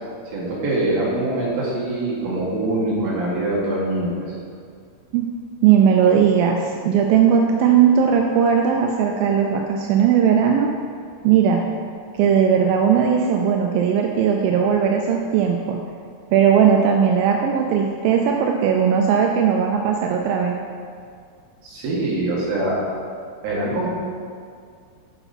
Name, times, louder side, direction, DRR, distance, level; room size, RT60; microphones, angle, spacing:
voice 1, 0.3-4.3 21.6-22.9 23.4-23.9, right 2 dB, 65° right, -5 dB, 3.2 m, -23 dB
voice 2, 5.6-10.7 11.2-11.7 12.1-15.8 16.3-20.6, right 7 dB, 85° right, 2 dB, 2.1 m, -18 dB
9.8 x 6.8 x 4.2 m, 2.2 s
omnidirectional pair, 4.7 m